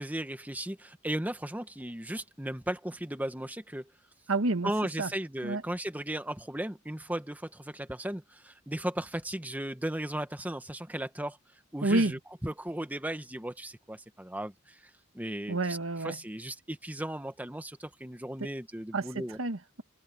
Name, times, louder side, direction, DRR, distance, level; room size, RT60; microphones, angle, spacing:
voice 1, 0.0-3.9 4.6-11.4 11.7-15.8 16.0-19.4, right 1 dB, 10° right, 1.2 m, -36 dB
voice 2, 4.3-4.7 5.0-5.1 5.4-5.6 11.8-12.1 15.5-16.2 18.9-19.0 19.4-19.8, right 2 dB, 85° right, 1.5 m, -28 dB
head